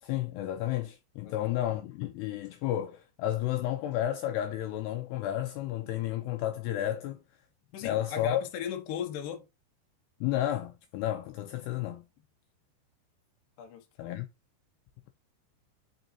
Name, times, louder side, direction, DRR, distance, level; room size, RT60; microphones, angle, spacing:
voice 1, 0.0-7.2 7.8-8.4 10.2-12.1 14.0-14.3, left 13 dB, 80° left, 2.5 m, -32 dB
voice 2, 7.7-9.4 13.6-13.8, left 7 dB, 65° left, 2.3 m, -36 dB
6.6 x 5.4 x 2.7 m
omnidirectional pair, 5.3 m